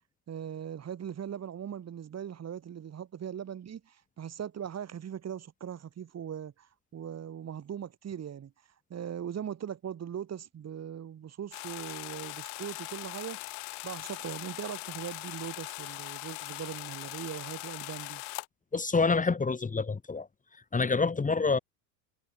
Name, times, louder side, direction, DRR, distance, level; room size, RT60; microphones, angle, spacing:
voice 1, 0.3-8.5 8.9-13.4 13.8-18.2, right 9 dB, 30° right, 4.2 m, -40 dB
sound 1, 11.5-18.5, left 33 dB, 70° left, 3.7 m, -41 dB
voice 2, 18.7-20.3 20.7-21.6, left 4 dB, 15° left, 2.9 m, -27 dB
supercardioid pair, 100°, 47 cm